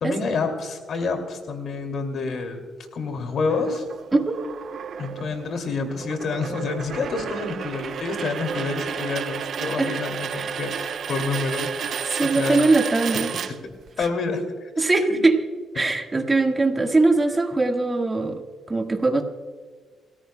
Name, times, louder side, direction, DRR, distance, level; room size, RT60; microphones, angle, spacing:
voice 1, 0.0-2.6 2.9-3.8 5.0-12.6 13.4-13.6 14.0-14.7 15.1-15.2 15.8-15.9, left 4 dB, 65° left, 5 dB, 2.4 m, -28 dB
sound 1, 3.5-14.1, right 7 dB, 60° right, 0.5 m, -32 dB
voice 2, 12.1-13.3 14.8-15.4 15.7-18.4 18.7-19.2, right 3 dB, 20° right, 3 dB, 1.6 m, -21 dB
29.0 x 13.5 x 2.2 m, 1.5 s
cardioid pair, 100°, 0 cm